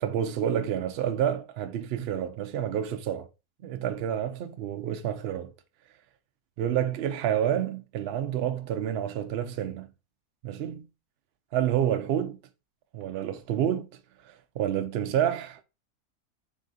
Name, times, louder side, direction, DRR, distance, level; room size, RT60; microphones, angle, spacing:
voice 1, 0.0-3.3 3.6-5.5 6.6-9.9 10.4-10.9 11.5-12.4 12.9-13.9 14.6-15.6, right 10 dB, 90° right, 0.5 m, -28 dB
3.9 x 3.7 x 2.6 m
omnidirectional pair, 1.7 m